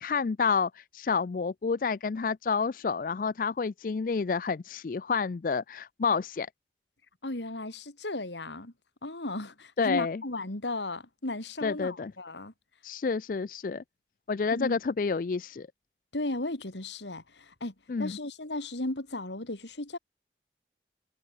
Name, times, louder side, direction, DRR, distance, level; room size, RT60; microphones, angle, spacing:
voice 1, 0.0-6.5 9.8-10.2 11.6-12.1 12.8-13.8 14.3-15.7 17.9-18.2, left 5 dB, 50° left, 0.4 m, -29 dB
voice 2, 7.2-8.7 9.0-12.5 14.5-14.8 16.1-20.0, left 2 dB, 90° left, 2.8 m, -35 dB
head